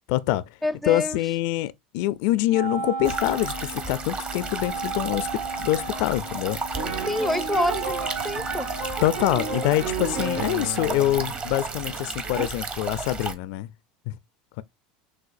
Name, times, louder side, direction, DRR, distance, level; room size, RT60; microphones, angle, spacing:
voice 1, 0.1-0.4 0.9-6.6 9.0-13.7 14.1-14.2 14.6-14.7, left 15 dB, 65° left, 0.4 m, -25 dB
voice 2, 0.6-1.2 7.1-8.7, left 1 dB, ahead, 0.5 m, -27 dB
Wind instrument woodwind instrument, 2.5-10.1, right 3 dB, 85° right, 1.3 m, -35 dB
sound 1, 3.0-13.3, right 4 dB, 30° right, 1.0 m, -34 dB
sound 2, 6.7-12.5, right 4 dB, 65° right, 2.3 m, -33 dB
6.3 x 2.4 x 2.5 m
supercardioid pair, 105°, 4 cm